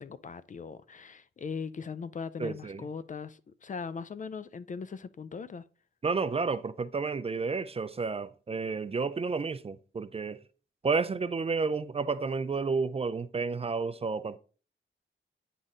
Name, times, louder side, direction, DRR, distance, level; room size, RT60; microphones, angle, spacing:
voice 1, 0.0-5.6, left 5 dB, 40° left, 0.4 m, -39 dB
voice 2, 2.4-2.8 6.0-10.4 10.8-14.4, right 4 dB, 30° right, 0.4 m, -31 dB
9.1 x 4.1 x 3.7 m
wide cardioid pair, 125°, 20 cm